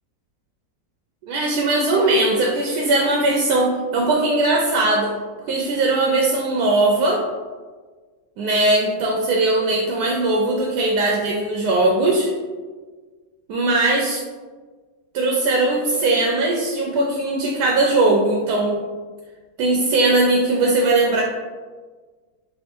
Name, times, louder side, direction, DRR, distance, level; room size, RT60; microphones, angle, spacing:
voice 1, 1.3-5.1 5.5-7.2 8.4-12.3 13.5-14.2 15.1-18.8 19.6-21.2, right 2 dB, 75° right, -1 dB, 1.0 m, -19 dB
3.4 x 2.5 x 4.3 m, 1.4 s
omnidirectional pair, 1.9 m